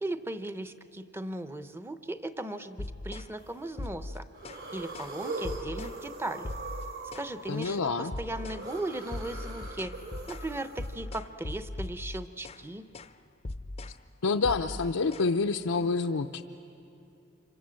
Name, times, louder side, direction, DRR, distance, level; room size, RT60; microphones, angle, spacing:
voice 1, 0.0-4.2 4.7-6.5 7.1-9.9 10.3-12.8, right 1 dB, 10° right, 10 dB, 0.7 m, -37 dB
sound 1, 2.8-3.3 3.8-4.7 4.9-5.2 5.4-6.0 6.4-7.3 7.6-7.8 8.1-8.7 9.1-12.7 12.9-13.2 13.4-14.0 14.4-15.2, left 2 dB, 30° left, 0.5 m, -39 dB
sound 2, 3.4-3.8 4.2-10.9, right 2 dB, 60° right, 3.6 m, -41 dB
voice 2, 7.5-8.1 14.2-16.4, left 4 dB, 90° left, 4 dB, 0.6 m, -28 dB
26.5 x 26.0 x 7.6 m, 2.8 s
head